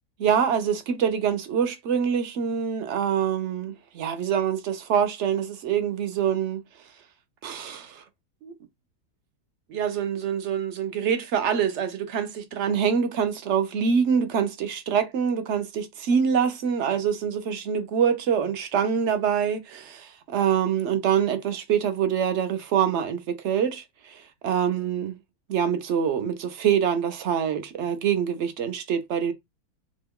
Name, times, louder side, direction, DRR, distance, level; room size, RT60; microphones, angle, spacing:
voice 1, 0.2-6.6 7.4-8.0 8.4-8.5 9.7-25.1 25.5-29.3, right 7 dB, 65° right, 0.7 m, -25 dB
2.9 x 2.2 x 3.5 m
omnidirectional pair, 1.6 m